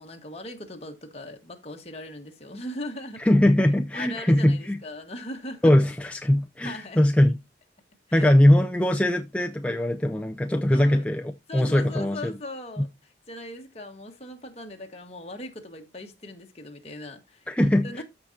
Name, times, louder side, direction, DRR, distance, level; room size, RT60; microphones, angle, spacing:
voice 1, 0.0-3.3 3.9-5.7 6.6-7.0 8.1-8.3 10.7-11.1 11.5-12.9 13.3-17.5 17.8-18.0, left 1 dB, 35° left, 1.5 m, -39 dB
voice 2, 3.2-4.8 5.6-7.4 8.1-12.3 12.8-12.9 17.5-18.0, left 1 dB, 5° left, 0.4 m, -21 dB
13.5 x 5.0 x 2.7 m
head